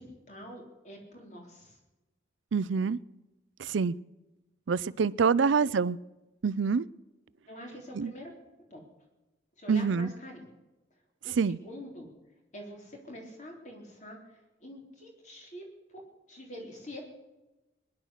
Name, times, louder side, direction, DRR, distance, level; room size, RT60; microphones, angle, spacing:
voice 1, 0.0-1.8 5.3-5.7 7.5-8.3 8.7-8.8 9.6-10.5 11.2-12.1 12.5-16.0 16.3-17.0, equal, 40° left, 3.7 m, -46 dB
voice 2, 2.5-3.0 3.6-4.0 4.7-6.0 6.4-6.8 8.0-8.1 9.7-10.1 11.4-11.6, right 5 dB, 90° right, 0.5 m, -26 dB
21.0 x 10.5 x 6.5 m
head